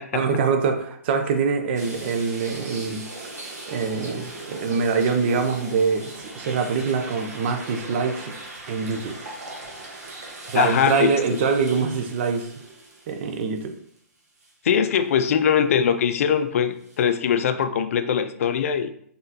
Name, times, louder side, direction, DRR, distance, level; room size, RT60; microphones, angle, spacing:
voice 1, 0.1-3.0 3.7-8.3 8.7-9.2 10.5-12.5 13.1-13.7, right 5 dB, 40° right, 6 dB, 0.6 m, -24 dB
sound 1, 1.7-14.0 14.4-14.5 16.8-17.0, right 2 dB, 75° right, 1.3 m, -39 dB
voice 2, 10.5-11.4 14.6-18.9, left 7 dB, 60° left, 10 dB, 0.4 m, -22 dB
3.8 x 3.8 x 2.8 m, 0.66 s
hypercardioid pair, 150°, 9 cm